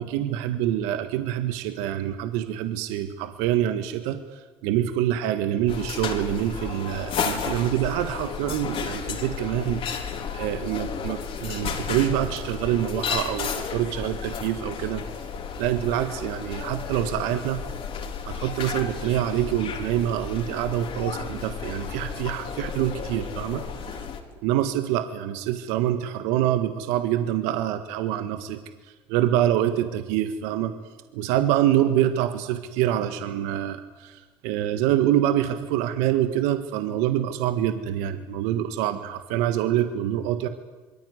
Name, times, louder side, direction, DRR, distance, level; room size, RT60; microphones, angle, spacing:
voice 1, 0.0-15.0 15.6-17.6 18.3-24.0 24.4-30.7 31.1-40.5, right 12 dB, 85° right, 9 dB, 1.6 m, -26 dB
sound 1, 5.7-24.2, left 6 dB, 55° left, 4.7 m, -33 dB
26.5 x 22.5 x 9.7 m, 1.3 s
supercardioid pair, 80°, 11 cm